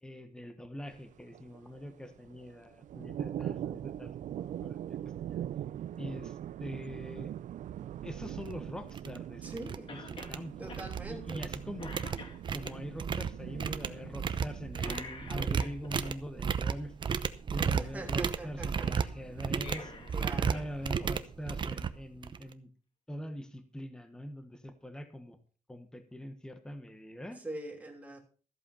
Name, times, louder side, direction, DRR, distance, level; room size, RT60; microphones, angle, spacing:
voice 1, 0.0-5.4 6.0-7.3 8.0-10.0 10.3-11.9 12.5-16.9 17.5-19.9 20.3-22.7 23.1-25.4 25.7-27.4, equal, 5° left, 8 dB, 1.3 m, -43 dB
sound 1, 0.9-14.7, right 11 dB, 85° right, 0.5 m, -41 dB
sound 2, 8.4-8.5 8.9-9.2 9.4-9.8 10.1-11.0 11.3-22.5, right 6 dB, 40° right, 0.8 m, -34 dB
voice 2, 9.4-9.9 10.6-11.4 17.6-19.1 20.1-20.7 27.3-28.2, right 1 dB, 10° right, 2 dB, 2.9 m, -43 dB
Cough, 9.9-10.4 10.7-10.8 11.3-11.5 11.8-12.8 14.8-16.1 19.4-20.7 21.0-21.1 22.2-22.3, left 3 dB, 45° left, 2.6 m, -46 dB
14.5 x 8.2 x 5.6 m, 0.38 s
wide cardioid pair, 170°, 13 cm